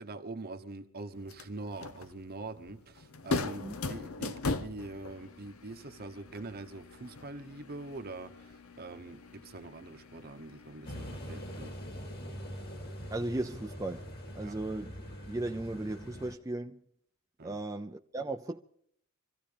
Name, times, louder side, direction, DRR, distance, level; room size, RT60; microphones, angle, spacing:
voice 1, 0.0-11.7 14.4-14.6 17.4-17.6, right 2 dB, 45° right, 1.0 m, -44 dB
sound 1, 1.1-11.7, left 3 dB, 75° left, 0.9 m, -40 dB
sound 2, 10.8-16.3, equal, 45° left, 2.6 m, -43 dB
voice 2, 13.1-14.1 14.3-16.8 17.4-18.6, right 2 dB, 15° right, 0.5 m, -36 dB
25.5 x 15.0 x 3.4 m
head